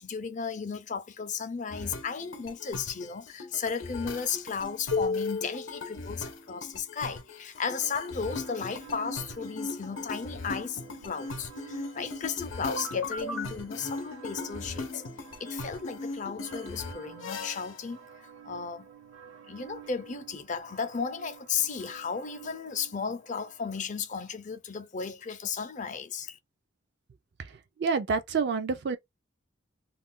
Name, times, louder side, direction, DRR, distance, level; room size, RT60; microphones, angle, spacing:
voice 1, 0.0-15.1 15.4-18.0 18.4-18.9 19.5-26.4, left 6 dB, 40° left, 0.5 m, -35 dB
sound 1, 1.7-17.8, left 3 dB, 80° left, 0.7 m, -37 dB
sound 2, 7.8-23.7, right 8 dB, 80° right, 0.8 m, -50 dB
voice 2, 27.4-29.0, right 5 dB, 60° right, 0.4 m, -29 dB
2.4 x 2.2 x 3.6 m
head